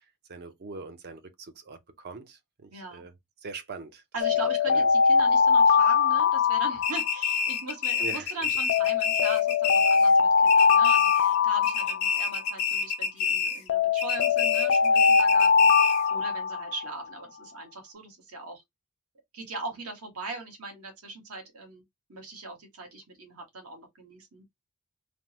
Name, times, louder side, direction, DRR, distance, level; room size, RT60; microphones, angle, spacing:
voice 1, 0.3-3.1 3.4-4.0 4.7-4.9 8.0-8.3, right 3 dB, 50° right, 0.5 m, -42 dB
voice 2, 2.7-3.0 4.1-18.6 19.3-21.8 22.1-24.4, right 3 dB, 80° right, 1.2 m, -40 dB
Alarm, 4.2-7.5 8.7-12.5 13.7-17.0, left 5 dB, 55° left, 0.4 m, -22 dB
sound 1, 6.8-10.2 10.5-11.4 11.6-13.7 14.0-16.1, left 6 dB, 80° left, 0.7 m, -28 dB
3.3 x 2.0 x 2.7 m
head